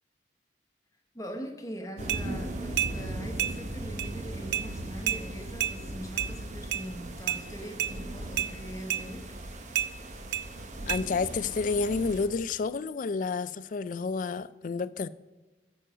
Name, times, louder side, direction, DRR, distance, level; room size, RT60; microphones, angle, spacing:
voice 1, 1.1-9.3, equal, 20° left, 1.1 m, -42 dB
sound 1, 2.0-12.3, right 1 dB, 40° right, 0.9 m, -38 dB
sound 2, 2.1-2.2 2.8-2.9 3.4-3.5 4.0-4.1 4.5-4.7 5.1-5.2 5.6-5.7 6.2-6.3 6.7-6.8 7.3-7.4 7.8-7.9 8.4-8.5 8.9-9.0 9.7-9.9 10.3-10.4 10.9-11.0, right 11 dB, 65° right, 0.4 m, -29 dB
voice 2, 10.9-15.1, left 4 dB, 45° left, 0.3 m, -30 dB
9.2 x 6.3 x 6.2 m
head